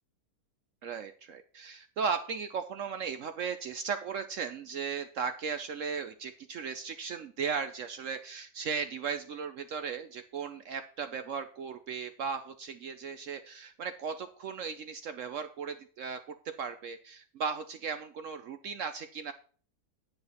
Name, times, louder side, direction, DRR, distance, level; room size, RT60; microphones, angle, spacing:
voice 1, 0.8-19.3, right 6 dB, 60° right, 9 dB, 0.9 m, -36 dB
9.2 x 5.7 x 5.5 m, 0.42 s
omnidirectional pair, 1.7 m